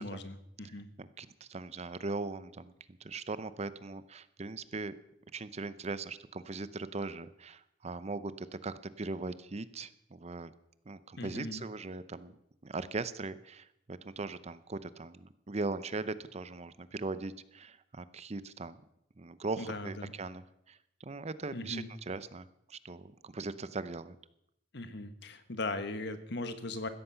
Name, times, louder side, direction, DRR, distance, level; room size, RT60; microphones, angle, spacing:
voice 1, 0.0-0.9 11.2-11.6 19.6-20.1 21.5-21.9 24.7-26.9, left 2 dB, 65° left, 10 dB, 1.4 m, -39 dB
voice 2, 1.0-4.9 5.3-10.5 10.9-12.4 12.6-18.8 19.2-24.2, right 3 dB, 35° right, 15 dB, 0.7 m, -40 dB
16.0 x 13.5 x 5.7 m, 0.79 s
head